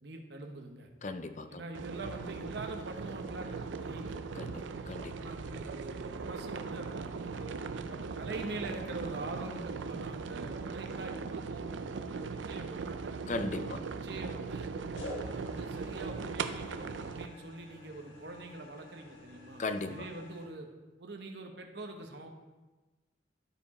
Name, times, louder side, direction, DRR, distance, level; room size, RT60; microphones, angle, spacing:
voice 1, 0.0-0.9 1.5-4.7 5.2-11.8 12.1-13.2 13.6-14.7 15.2-20.7 21.0-22.3, right 2 dB, 60° right, 3 dB, 0.9 m, -44 dB
voice 2, 1.0-1.6 4.4-4.5 4.9-5.1 13.3-13.8 19.6-19.9, left 2 dB, 40° left, 10 dB, 0.5 m, -36 dB
sound 1, 1.7-17.3, right 4 dB, 80° right, 0.5 m, -39 dB
sound 2, 13.0-13.7 14.9-20.5, left 1 dB, 80° left, 1.4 m, -49 dB
12.0 x 4.7 x 4.1 m, 1.2 s
head